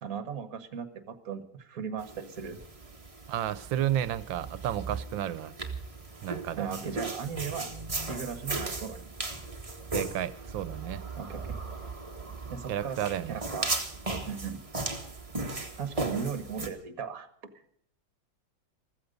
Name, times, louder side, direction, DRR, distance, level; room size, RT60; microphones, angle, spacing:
voice 1, 0.0-2.6 6.6-7.7 8.1-9.1 11.2-11.6 12.5-13.8 14.3-14.6 15.8-17.3, right 7 dB, 50° right, 1.7 m, -37 dB
sound 1, 2.0-16.7, right 3 dB, 20° right, 1.6 m, -37 dB
voice 2, 3.3-5.5 6.2-6.7 9.9-11.0 12.7-13.4, right 11 dB, 85° right, 1.5 m, -32 dB
15.0 x 14.5 x 5.3 m
omnidirectional pair, 2.0 m